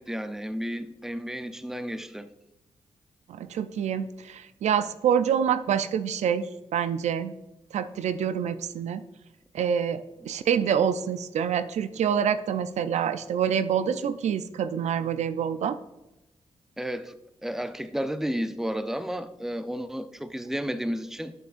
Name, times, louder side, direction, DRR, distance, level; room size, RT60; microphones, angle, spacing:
voice 1, 0.0-2.3 16.8-17.1 17.4-21.3, equal, 5° right, 0.6 m, -32 dB
voice 2, 3.3-6.5 6.7-7.3 7.7-9.0 9.5-15.8, right 8 dB, 75° right, 0.4 m, -26 dB
8.3 x 7.6 x 2.5 m
supercardioid pair, 50°, 12 cm